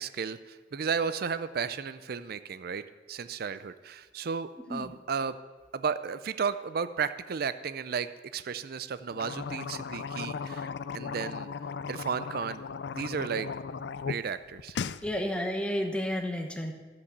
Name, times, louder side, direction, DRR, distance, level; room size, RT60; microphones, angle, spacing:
voice 1, 0.0-2.8 3.1-5.4 5.7-8.1 8.3-11.5 11.9-12.6 12.9-13.5 14.1-14.8, right 6 dB, 60° right, 13 dB, 0.4 m, -33 dB
sound 1, 9.1-14.2 14.5-15.0, left 5 dB, 70° left, 0.4 m, -36 dB
voice 2, 15.0-16.7, equal, 5° left, 3 dB, 1.2 m, -31 dB
12.5 x 8.6 x 6.7 m, 1.3 s
head